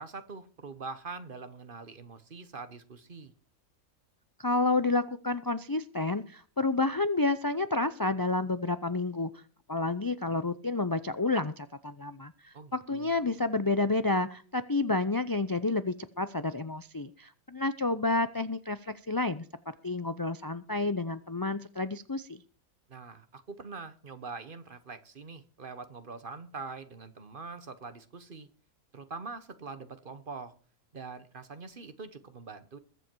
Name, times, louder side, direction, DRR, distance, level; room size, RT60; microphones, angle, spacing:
voice 1, 0.0-3.3 12.5-13.2 22.9-28.5 28.9-30.5 30.9-32.8, right 4 dB, 40° right, 12 dB, 1.2 m, -43 dB
voice 2, 4.4-9.4 9.7-19.4 19.8-22.4, left 3 dB, 35° left, 12 dB, 0.3 m, -30 dB
21.5 x 7.7 x 4.6 m, 0.41 s
omnidirectional pair, 1.5 m